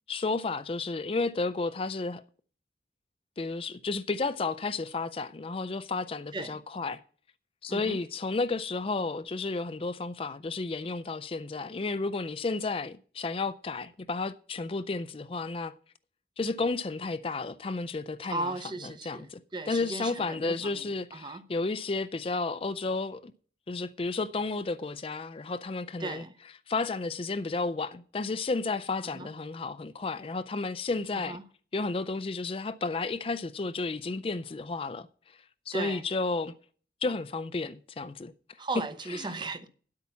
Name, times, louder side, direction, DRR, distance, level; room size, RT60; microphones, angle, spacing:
voice 1, 0.1-2.2 3.4-7.0 7.6-15.7 16.4-18.5 18.8-19.4 19.7-23.3 23.7-26.2 26.7-31.4 31.7-35.1 35.7-36.5 37.0-38.3 39.1-39.3, left 3 dB, 30° left, 0.4 m, -32 dB
voice 2, 18.3-20.9 21.1-21.4 26.0-26.3 29.1-29.3 31.1-31.4 35.7-36.0 38.6-39.7, right 3 dB, 25° right, 0.7 m, -36 dB
9.7 x 8.3 x 5.7 m
head